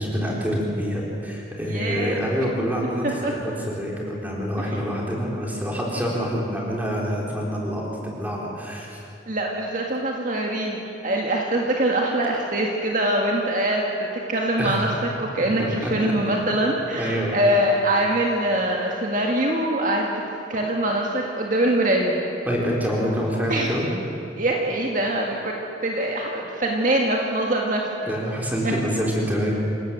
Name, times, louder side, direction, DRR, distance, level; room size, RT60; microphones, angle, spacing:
voice 1, 0.0-3.1 3.8-9.0 14.6-14.9 15.6-16.1 17.0-17.3 22.5-23.9 28.1-29.5, equal, 10° right, -3 dB, 4.1 m, -26 dB
voice 2, 1.6-2.2 3.0-3.3 4.6-4.8 9.3-20.1 20.5-22.2 23.5-23.7 24.4-25.6 25.8-28.1 28.6-28.7, right 1 dB, 45° right, -1 dB, 2.0 m, -23 dB
27.0 x 17.0 x 7.6 m, 2.9 s
head